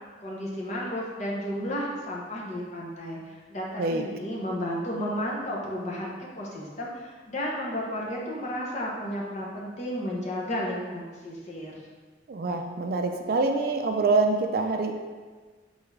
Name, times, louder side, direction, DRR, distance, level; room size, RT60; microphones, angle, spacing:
voice 1, 0.2-11.8, equal, 40° left, -3 dB, 0.8 m, -33 dB
voice 2, 12.3-14.9, right 3 dB, 55° right, 4 dB, 0.3 m, -25 dB
3.9 x 3.5 x 3.2 m, 1.4 s
head